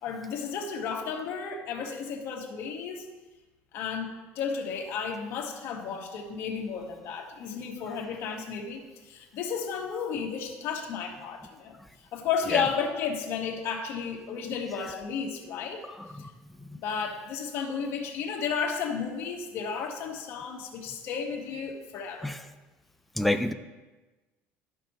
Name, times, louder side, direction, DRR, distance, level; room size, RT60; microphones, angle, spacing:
voice 1, 0.0-3.1 3.7-11.7 12.1-15.8 16.8-22.3, left 6 dB, 50° left, 1 dB, 1.2 m, -33 dB
voice 2, 15.9-16.2 16.6-16.8 22.2-22.4 23.2-23.5, left 1 dB, ahead, 8 dB, 0.3 m, -28 dB
13.0 x 5.5 x 2.9 m, 1.2 s
cardioid pair, 160°, 5 cm